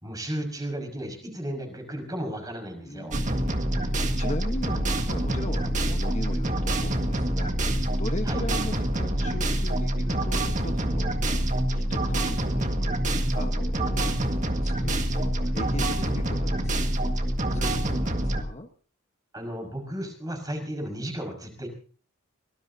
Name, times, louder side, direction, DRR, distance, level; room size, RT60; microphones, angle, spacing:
voice 1, 0.0-3.2 8.3-8.4 17.5-17.8 19.3-21.7, equal, 20° right, 4 dB, 5.7 m, -34 dB
voice 2, 2.8-17.4 17.7-18.7, left 1 dB, 35° left, 5 dB, 1.2 m, -39 dB
sound 1, 3.1-18.4, right 1 dB, 35° right, 1.8 m, -26 dB
24.0 x 19.0 x 2.8 m, 0.40 s
head